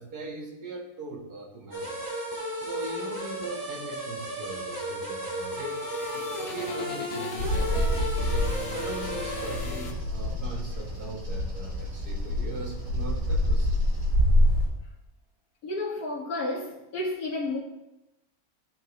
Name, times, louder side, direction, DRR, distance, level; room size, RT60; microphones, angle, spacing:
voice 1, 0.0-2.0 2.5-5.8 6.1-8.2 8.7-13.8, right 2 dB, 90° right, 2.1 m, -40 dB
sound 1, 1.7-10.0, equal, 15° right, 2.7 m, -34 dB
sound 2, 5.0-10.6, left 4 dB, 45° left, 1.1 m, -39 dB
Bird vocalization bird call bird song, 7.4-14.7, left 1 dB, 65° right, 4.3 m, -27 dB
voice 2, 15.6-17.6, left 2 dB, 70° left, 1.9 m, -31 dB
14.5 x 5.5 x 3.2 m
omnidirectional pair, 1.6 m